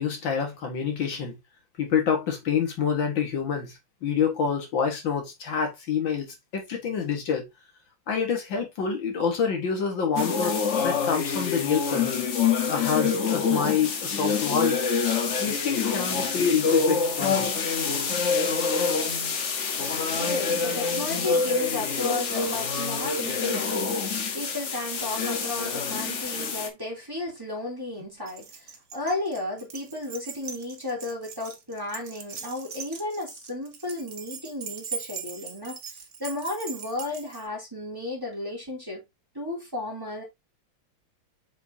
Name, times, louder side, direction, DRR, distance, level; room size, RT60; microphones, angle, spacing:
voice 1, 0.0-1.4 1.8-7.5 8.1-12.2 12.7-14.8 15.4-17.5 20.7-20.9, left 6 dB, 70° left, 2.3 m, -27 dB
sound 1, 10.2-26.7, left 5 dB, 45° left, 1.1 m, -26 dB
voice 2, 20.1-39.0 39.3-40.2, left 2 dB, 10° right, 2.9 m, -34 dB
Keys jangling, 28.3-37.5, right 6 dB, 45° right, 1.1 m, -40 dB
7.2 x 5.3 x 2.7 m
omnidirectional pair, 2.2 m